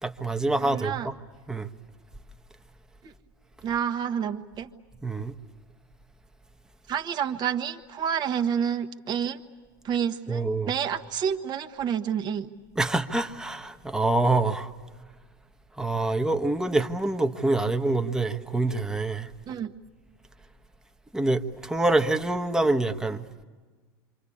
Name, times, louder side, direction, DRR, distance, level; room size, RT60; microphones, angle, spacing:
voice 1, 0.0-1.1 1.5-1.7 5.0-5.3 10.3-10.7 12.8-14.7 15.8-19.3 21.1-23.2, right 2 dB, 5° right, 1.1 m, -26 dB
voice 2, 0.6-1.1 3.0-3.1 3.6-4.7 6.9-9.4 9.8-12.5 19.5-19.7, right 8 dB, 35° right, 1.3 m, -29 dB
27.5 x 25.5 x 8.6 m
hypercardioid pair, 105°, 12 cm